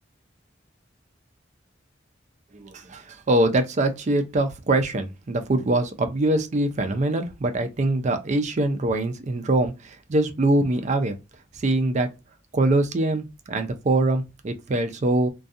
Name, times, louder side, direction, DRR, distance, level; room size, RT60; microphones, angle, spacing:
voice 1, 2.5-11.2 11.6-12.1 12.5-15.3, right 2 dB, 40° right, 0.4 m, -23 dB
2.4 x 2.3 x 2.6 m
head